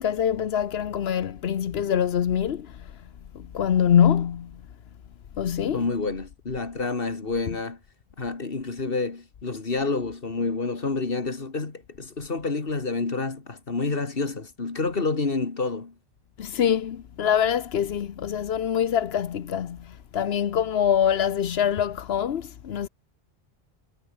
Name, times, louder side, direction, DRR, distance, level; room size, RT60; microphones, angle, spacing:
voice 1, 0.0-2.9 3.3-4.5 5.4-5.8 16.4-22.9, left 9 dB, 85° left, 1.1 m, -24 dB
voice 2, 5.7-7.8 8.2-15.9, left 3 dB, 65° left, 2.4 m, -28 dB
omnidirectional pair, 1.0 m